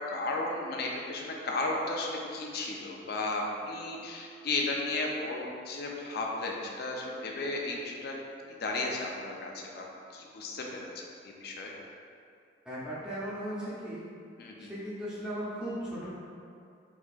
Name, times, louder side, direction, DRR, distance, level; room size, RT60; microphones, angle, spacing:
voice 1, 0.0-8.2 8.6-9.8 10.1-10.9 11.2-11.7 14.4-14.7, left 2 dB, 55° left, -1 dB, 0.4 m, -34 dB
voice 2, 12.6-14.1 14.6-16.1, equal, 5° right, -10 dB, 0.8 m, -37 dB
4.5 x 2.8 x 2.4 m, 2.4 s
head